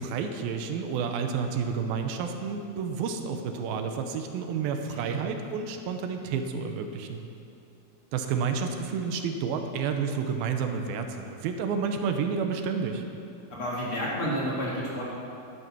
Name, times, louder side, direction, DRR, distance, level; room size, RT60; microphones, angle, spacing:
voice 1, 0.0-7.2 8.1-13.0, right 6 dB, 80° right, 6 dB, 2.6 m, -30 dB
voice 2, 13.5-15.0, equal, 40° left, -6 dB, 2.4 m, -30 dB
11.5 x 11.0 x 6.1 m, 2.7 s
omnidirectional pair, 4.3 m